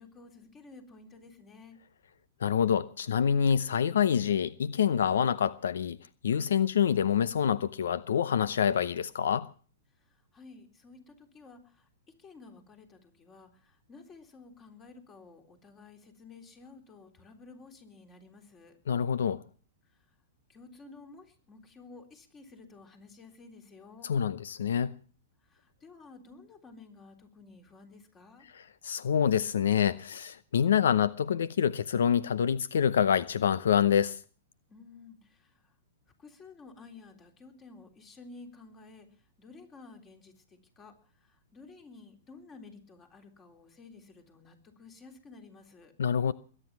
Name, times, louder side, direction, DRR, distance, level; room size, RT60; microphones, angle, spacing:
voice 1, 0.0-1.8 9.9-18.8 19.8-20.1 20.5-24.1 25.4-28.5 34.7-35.8 36.2-45.9, left 3 dB, 20° left, 3.6 m, -53 dB
voice 2, 2.4-6.0 6.2-9.5 18.9-19.4 24.0-24.9 28.5-34.2 46.0-46.3, left 8 dB, 80° left, 0.7 m, -26 dB
21.5 x 9.9 x 6.0 m
hypercardioid pair, 135°, 0 cm